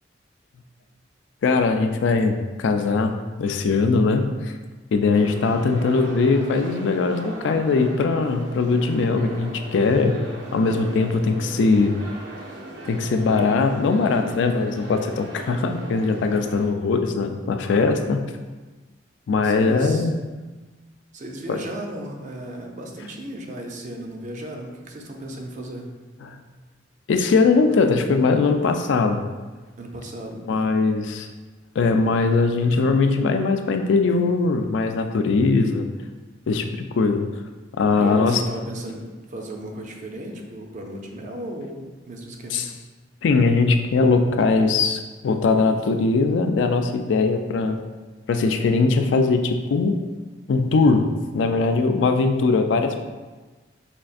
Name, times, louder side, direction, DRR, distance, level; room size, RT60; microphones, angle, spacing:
voice 1, 1.4-3.1 3.4-4.5 4.9-10.2 10.5-12.0 12.9-18.2 19.3-20.2 21.5-21.6 26.2-26.4 27.1-29.2 30.5-31.3 31.8-35.9 36.5-37.3 37.8-38.4 42.5-42.7 43.2-47.8 48.3-50.0 50.5-51.1 51.3-53.0, left 4 dB, 70° left, 6 dB, 0.3 m, -20 dB
sound 1, 5.1-16.7, right 1 dB, 90° right, 0.8 m, -38 dB
voice 2, 19.4-20.1 21.1-25.9 29.8-30.7 37.9-42.6, right 1 dB, 40° right, 1 dB, 0.5 m, -35 dB
5.1 x 2.4 x 2.5 m, 1.3 s
head